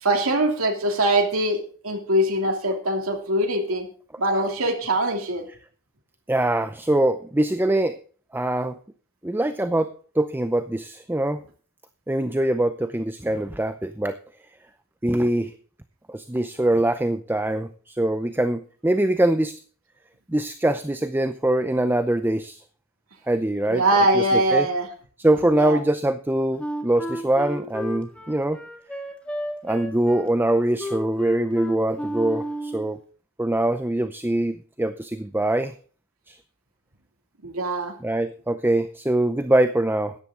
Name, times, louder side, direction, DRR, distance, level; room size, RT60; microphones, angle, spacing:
voice 1, 0.0-1.6 1.8-3.9 4.2-5.4 23.7-24.9 25.6-25.8 37.4-37.9, right 1 dB, 80° right, 2 dB, 3.0 m, -22 dB
voice 2, 6.3-8.0 8.3-8.8 9.2-11.4 12.1-14.2 15.0-15.5 16.1-19.5 20.3-22.6 23.3-23.8 24.1-24.7 25.2-28.6 29.6-33.0 33.4-35.7 36.3-36.4 38.0-40.1, right 1 dB, 10° right, 10 dB, 0.6 m, -23 dB
Wind instrument woodwind instrument, 26.6-32.9, right 1 dB, 5° left, 2.0 m, -32 dB
14.0 x 10.5 x 3.8 m, 0.42 s
head